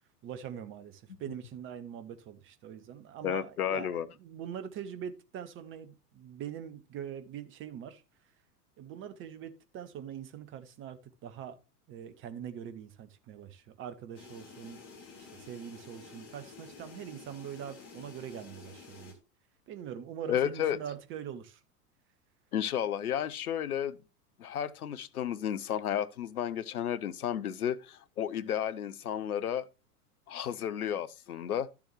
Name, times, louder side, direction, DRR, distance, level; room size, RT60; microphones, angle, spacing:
voice 1, 0.2-8.0 8.8-11.6 11.9-14.8 15.2-19.1 19.7-21.6, right 9 dB, 25° right, 0.9 m, -43 dB
voice 2, 3.2-4.1 20.3-20.8 22.5-24.0 24.4-29.7 30.3-31.7, left 9 dB, 65° left, 0.8 m, -32 dB
sound 1, 14.1-19.1, left 5 dB, 35° left, 2.8 m, -51 dB
12.0 x 7.0 x 3.2 m
figure-of-eight pair, 90°, 47 cm